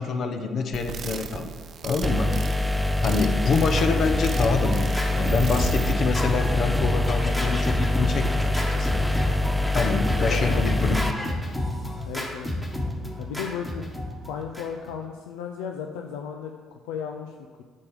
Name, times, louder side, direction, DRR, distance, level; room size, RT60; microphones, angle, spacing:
voice 1, 0.0-1.5 1.8-2.3 3.0-9.1 9.7-11.0, left 4 dB, 55° left, 6 dB, 1.0 m, -26 dB
sound 1, 0.7-5.9, right 6 dB, 55° right, 0.6 m, -37 dB
sound 2, 2.0-11.1, left 1 dB, 5° right, 0.4 m, -25 dB
Scratching (performance technique), 2.8-14.9, left 1 dB, 15° left, 1.7 m, -31 dB
voice 2, 10.1-10.7 12.1-12.5 13.2-13.9 14.2-17.6, left 7 dB, 85° left, 3 dB, 0.5 m, -35 dB
8.7 x 6.4 x 4.9 m, 1.5 s
supercardioid pair, 70°, 0 cm